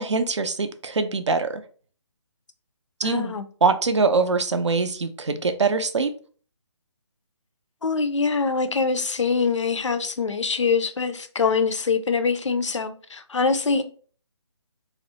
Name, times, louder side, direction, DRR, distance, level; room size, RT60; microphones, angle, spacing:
voice 1, 0.0-1.6 3.0-6.1, right 4 dB, 70° right, 0.4 m, -23 dB
voice 2, 3.0-3.4 7.8-13.8, left 4 dB, 75° left, 0.4 m, -24 dB
2.4 x 2.0 x 2.8 m
figure-of-eight pair, 145°, 16 cm